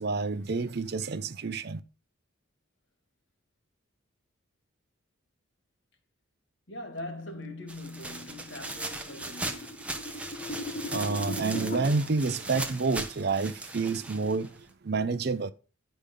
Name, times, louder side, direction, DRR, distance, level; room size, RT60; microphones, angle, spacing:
voice 1, 0.0-1.8 10.6-15.5, right 4 dB, 50° right, 0.5 m, -29 dB
voice 2, 6.7-10.0, left 1 dB, 55° left, 2.0 m, -42 dB
sound 1, 7.1-11.8, left 1 dB, 40° left, 0.6 m, -39 dB
sound 2, 7.7-14.7, right 2 dB, 5° right, 0.8 m, -38 dB
10.0 x 5.2 x 5.2 m
head